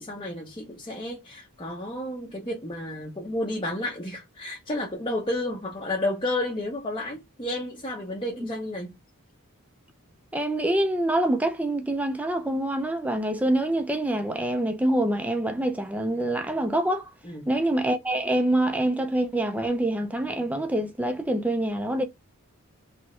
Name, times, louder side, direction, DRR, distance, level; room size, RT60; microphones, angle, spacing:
voice 1, 0.0-8.9 17.2-17.5, left 1 dB, 20° left, 0.8 m, -31 dB
voice 2, 10.3-17.1 17.5-22.0, right 1 dB, 5° right, 0.5 m, -25 dB
3.4 x 3.1 x 3.0 m
head